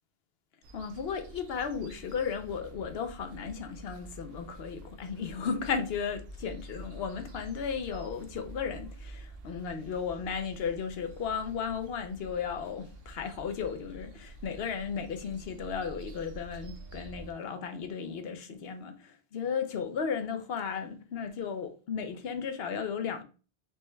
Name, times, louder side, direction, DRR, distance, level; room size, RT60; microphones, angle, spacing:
sound 1, 0.6-17.3, right 1 dB, 75° right, 0.8 m, -48 dB
voice 1, 0.7-23.2, left 6 dB, 75° left, 0.9 m, -35 dB
4.5 x 2.2 x 3.1 m
omnidirectional pair, 1.0 m